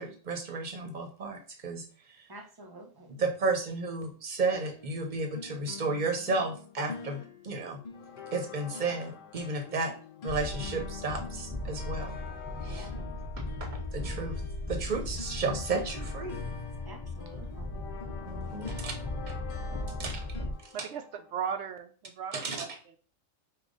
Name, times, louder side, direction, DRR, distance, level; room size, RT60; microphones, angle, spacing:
voice 1, 0.0-2.3 3.2-7.8 8.3-9.9 10.2-12.2 12.6-12.9 13.6-14.3 14.7-16.4 18.3-18.9 20.0-20.3 20.6-20.7 22.3-22.6, right 3 dB, 40° right, 4 dB, 0.9 m, -33 dB
voice 2, 2.3-3.1 9.9-10.0 12.7-13.1 16.8-17.9 18.6-18.8, right 1 dB, 25° right, 3 dB, 0.5 m, -49 dB
Unmodified Guitar, 4.5-20.5, left 6 dB, 45° left, 0.6 m, -47 dB
sound 1, 7.9-21.7, left 7 dB, 75° left, 1.0 m, -49 dB
sound 2, 10.3-20.5, left 1 dB, 10° left, 1.2 m, -38 dB
voice 3, 20.7-23.0, right 7 dB, 65° right, 8 dB, 0.8 m, -37 dB
5.0 x 2.5 x 3.8 m, 0.40 s
omnidirectional pair, 1.3 m